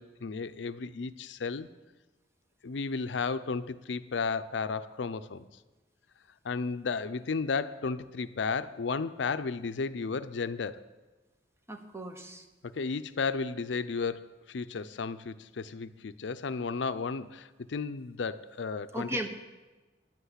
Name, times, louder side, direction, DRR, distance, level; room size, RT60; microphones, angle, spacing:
voice 1, 0.0-1.7 2.6-5.5 6.4-10.9 12.6-19.3, left 4 dB, 75° left, 12 dB, 0.5 m, -33 dB
voice 2, 11.7-12.5 18.9-19.3, right 1 dB, 15° right, 5 dB, 1.1 m, -36 dB
10.5 x 8.0 x 8.1 m, 1.2 s
head